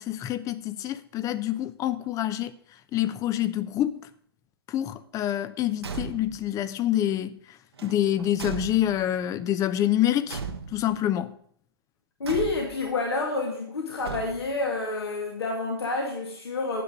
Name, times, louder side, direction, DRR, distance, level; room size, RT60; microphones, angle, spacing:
voice 1, 0.0-2.5 2.9-4.1 4.7-7.6 7.8-10.4 10.7-11.4, left 12 dB, 25° left, 0.7 m, -27 dB
Car / Truck / Slam, 5.7-6.5 7.7-9.2 10.3-11.0 12.2-12.9 14.0-14.7, right 5 dB, 80° right, 1.6 m, -37 dB
voice 2, 12.2-16.8, left 3 dB, 80° left, 2.3 m, -28 dB
10.0 x 8.0 x 5.1 m
figure-of-eight pair, 115°, 13 cm